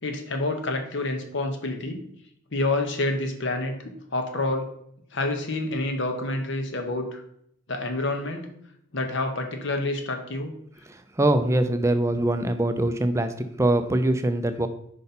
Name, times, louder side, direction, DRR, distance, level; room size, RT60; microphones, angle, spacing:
voice 1, 0.0-2.0 2.5-4.7 5.1-7.2 7.7-8.5 8.9-10.5, left 2 dB, 55° left, 5 dB, 1.0 m, -28 dB
voice 2, 10.9-14.7, right 1 dB, 15° right, 8 dB, 0.4 m, -23 dB
5.4 x 5.2 x 4.2 m, 0.72 s
head